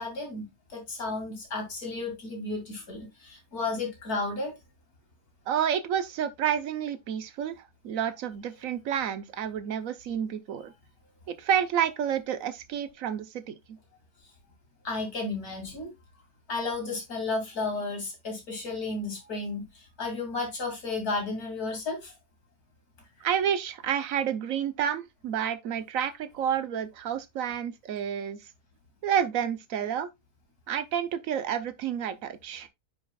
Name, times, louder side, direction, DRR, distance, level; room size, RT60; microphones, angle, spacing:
voice 1, 0.0-4.5 14.8-15.9 16.5-22.1, left 3 dB, 70° left, 3.0 m, -33 dB
voice 2, 5.5-7.6 7.8-10.7 11.3-13.8 23.2-28.5 29.0-30.1 30.7-32.7, right 9 dB, 65° right, 1.2 m, -29 dB
9.7 x 5.1 x 2.3 m
omnidirectional pair, 1.6 m